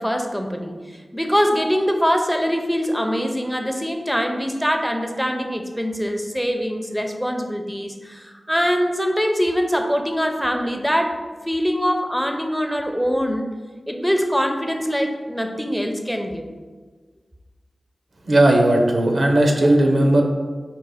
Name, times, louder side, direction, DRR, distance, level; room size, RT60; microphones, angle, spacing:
voice 1, 0.0-13.5 13.9-16.4, equal, ahead, 4 dB, 0.5 m, -23 dB
voice 2, 18.3-20.2, right 1 dB, 70° right, 1 dB, 0.7 m, -16 dB
5.1 x 2.1 x 4.8 m, 1.4 s
cardioid pair, 50°, 0 cm